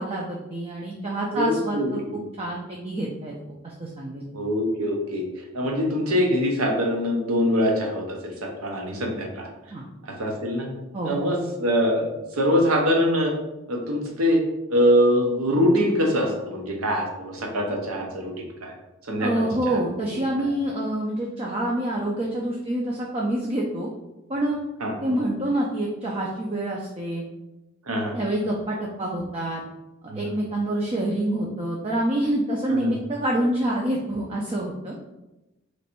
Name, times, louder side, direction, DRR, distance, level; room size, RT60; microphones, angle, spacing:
voice 1, 0.0-3.3 3.6-4.3 9.7-9.9 10.9-11.3 19.2-23.9 24.3-24.6 25.0-27.2 28.1-29.6 30.1-34.9, right 1 dB, 25° right, -2 dB, 0.4 m, -27 dB
voice 2, 1.3-2.1 4.3-5.2 5.5-9.5 10.0-10.7 11.0-13.3 13.7-14.4 14.7-18.7 19.1-19.8 20.4-20.5 24.8-24.9 27.9-28.2 30.1-30.3 32.7-32.9, equal, 85° right, 1 dB, 0.8 m, -23 dB
3.0 x 2.6 x 4.3 m, 0.98 s
head